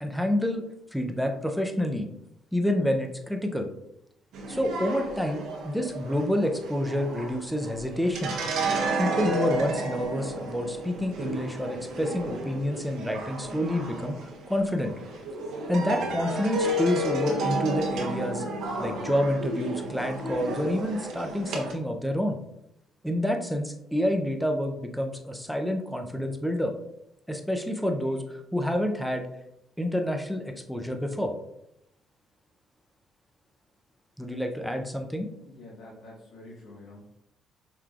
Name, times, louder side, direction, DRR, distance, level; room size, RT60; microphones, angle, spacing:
voice 1, 0.0-0.6 0.9-2.1 2.5-3.7 4.5-8.3 8.7-14.2 14.5-14.9 15.7-18.4 18.8-22.4 23.0-26.7 27.3-29.3 29.8-31.3 34.2-35.3, left 1 dB, ahead, 4 dB, 0.5 m, -28 dB
sound 1, 4.3-21.7, right 1 dB, 75° right, 0.9 m, -32 dB
voice 2, 35.4-37.2, left 2 dB, 80° left, -6 dB, 1.4 m, -47 dB
5.7 x 3.2 x 2.4 m, 0.79 s
cardioid pair, 130°, 0 cm